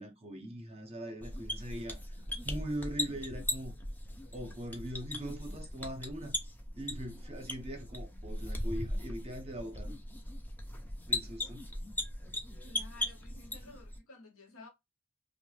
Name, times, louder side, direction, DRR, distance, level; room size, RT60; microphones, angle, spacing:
voice 1, 0.0-2.0 2.4-3.7 4.3-6.4 6.8-10.0 11.1-11.7, right 1 dB, 30° right, 0.7 m, -41 dB
sound 1, 1.2-14.0, left 1 dB, 10° left, 0.4 m, -39 dB
voice 2, 12.6-14.7, left 3 dB, 65° left, 0.8 m, -53 dB
2.7 x 2.1 x 3.1 m
head